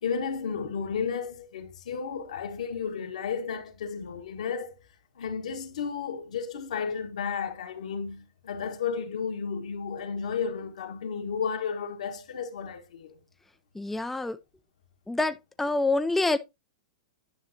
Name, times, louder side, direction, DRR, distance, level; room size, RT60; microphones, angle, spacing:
voice 1, 0.0-4.8 5.1-13.2, left 6 dB, 75° left, 1.4 m, -33 dB
voice 2, 13.8-14.4 15.1-16.4, left 2 dB, 5° left, 0.5 m, -26 dB
10.5 x 5.8 x 2.8 m
hypercardioid pair, 110°, 4 cm